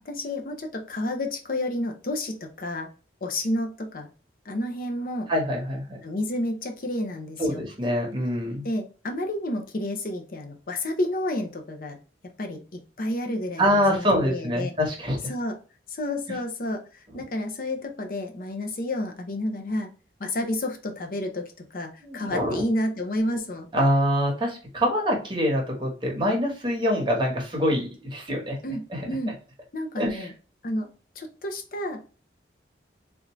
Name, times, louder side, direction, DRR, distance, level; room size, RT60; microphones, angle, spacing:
voice 1, 0.0-2.9 3.2-4.1 4.5-5.3 6.0-7.6 8.6-12.0 12.4-14.7 15.3-15.6 15.9-19.9 20.2-23.7 28.6-29.3 29.7-30.3 30.6-30.9 31.2-32.0, left 1 dB, 50° left, 3 dB, 0.6 m, -30 dB
voice 2, 5.3-6.0 7.4-8.6 13.6-15.2 22.0-22.6 23.7-28.6 28.9-29.1 30.0-30.3, equal, 25° right, -1 dB, 1.1 m, -25 dB
3.5 x 2.6 x 3.0 m, 0.36 s
head